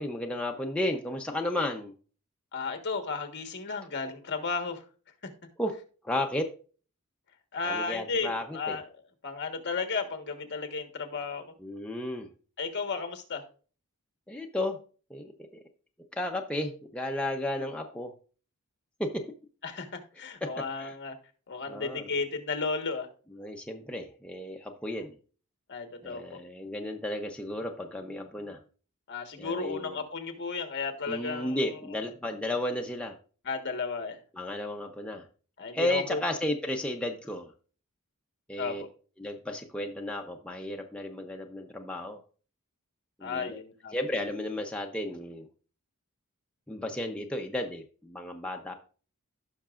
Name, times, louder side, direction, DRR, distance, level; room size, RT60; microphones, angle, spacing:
voice 1, 0.0-1.9 5.6-5.7 6.0-6.5 7.6-8.8 11.6-12.3 14.3-14.8 15.1-15.6 16.1-18.1 19.0-19.2 20.8-20.9 21.7-22.1 23.4-25.1 26.0-28.6 29.4-30.0 31.1-33.2 34.3-35.2 35.7-37.5 38.5-38.8 39.2-42.2 43.2-43.6 43.9-45.5 46.7-48.7, left 1 dB, 5° left, 1 dB, 0.6 m, -33 dB
voice 2, 2.5-4.8 5.2-5.3 7.5-8.8 9.2-11.5 12.6-13.4 19.6-21.1 21.5-23.1 25.7-26.4 29.1-31.7 33.4-34.2 35.6-36.2 38.6-38.9 43.2-43.9, left 4 dB, 50° left, 6 dB, 1.4 m, -34 dB
16.0 x 5.9 x 2.4 m, 0.39 s
head